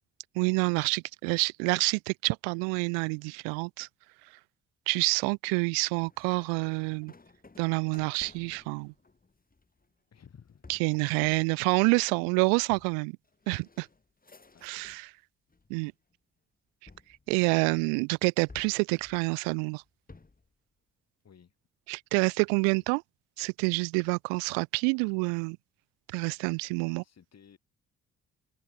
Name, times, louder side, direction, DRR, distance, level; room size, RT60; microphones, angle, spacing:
voice 1, 0.4-3.9 4.9-7.1 7.6-8.9 10.7-13.2 13.5-13.9 14.6-15.0 15.7-15.9 17.3-19.8 21.9-23.0 23.4-25.6 26.1-27.0, right 40 dB or more, 80° right, 0.6 m, -27 dB
sound 1, 6.0-15.1 15.5-16.1 16.9-17.9 18.5-20.5, left 3 dB, 25° left, 5.7 m, -56 dB
voice 2, 10.1-11.2 14.5-15.0 21.2-21.6 22.7-22.8 26.8-27.6, left 7 dB, 50° left, 6.6 m, -57 dB
open air
hypercardioid pair, 45°, 34 cm